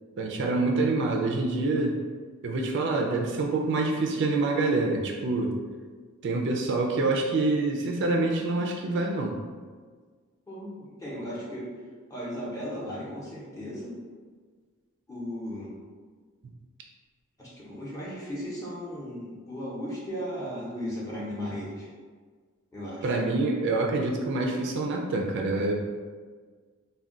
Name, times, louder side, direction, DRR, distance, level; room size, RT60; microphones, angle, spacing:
voice 1, 0.2-2.0 2.4-5.5 6.2-9.3 23.0-25.7, right 2 dB, 55° right, 1 dB, 0.3 m, -26 dB
voice 2, 10.5-11.7 12.1-14.0 15.1-15.7 17.4-21.9 22.7-23.1, equal, 15° left, -7 dB, 0.7 m, -36 dB
2.3 x 2.2 x 3.7 m, 1.5 s
head